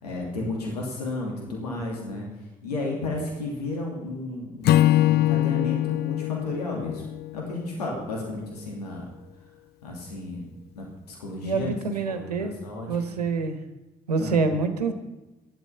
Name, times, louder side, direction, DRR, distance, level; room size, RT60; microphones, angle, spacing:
voice 1, 0.0-2.3 2.6-7.0 7.3-9.1 9.8-10.4 10.8-11.8 12.1-13.2 14.2-14.4, left 2 dB, 85° left, -1 dB, 2.7 m, -33 dB
Acoustic guitar / Strum, 4.6-8.0, left 14 dB, 55° left, 0.5 m, -23 dB
voice 2, 11.4-12.6 12.9-13.6 14.1-14.9, right 4 dB, 90° right, 8 dB, 1.2 m, -26 dB
13.5 x 11.5 x 5.7 m, 1.1 s
figure-of-eight pair, 45°, 20 cm